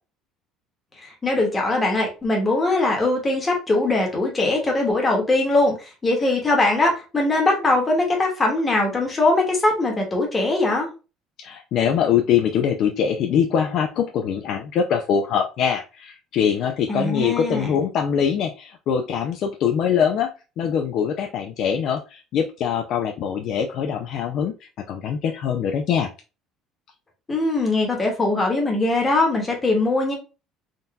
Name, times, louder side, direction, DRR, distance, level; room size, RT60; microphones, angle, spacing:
voice 1, 1.0-5.8 6.0-10.9 16.9-17.7 27.3-30.1, left 2 dB, 15° left, 1 dB, 1.1 m, -21 dB
voice 2, 11.4-24.5 24.9-26.1, left 8 dB, 50° left, 4 dB, 0.4 m, -23 dB
3.7 x 2.7 x 2.3 m, 0.31 s
cardioid pair, 150°, 0 cm